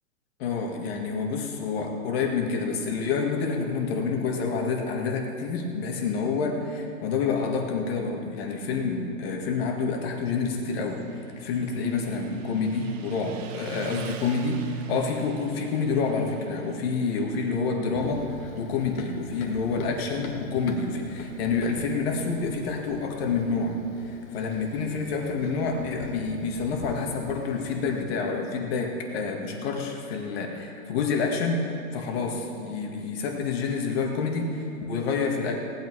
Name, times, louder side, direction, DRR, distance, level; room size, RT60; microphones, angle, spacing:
voice 1, 0.4-11.0 11.4-18.3 18.6-23.8 24.0-35.6, left 4 dB, 45° left, 1 dB, 1.9 m, -28 dB
Motorcycle, 10.5-21.6, right 7 dB, 60° right, 1.2 m, -42 dB
Run, 17.9-28.0, left 4 dB, 70° left, 1.6 m, -42 dB
18.0 x 8.9 x 4.7 m, 2.5 s
hypercardioid pair, 160°, 43 cm